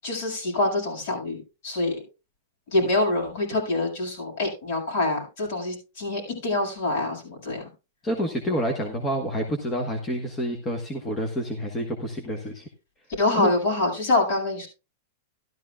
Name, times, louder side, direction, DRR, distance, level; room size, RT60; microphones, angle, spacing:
voice 1, 0.0-1.4 1.6-2.0 2.7-7.6 13.2-14.7, left 2 dB, 55° left, 0 dB, 6.8 m, -25 dB
voice 2, 8.0-12.6 13.3-13.5, equal, 15° left, 3 dB, 1.3 m, -28 dB
14.0 x 12.5 x 2.4 m, 0.30 s
supercardioid pair, 160°, 0 cm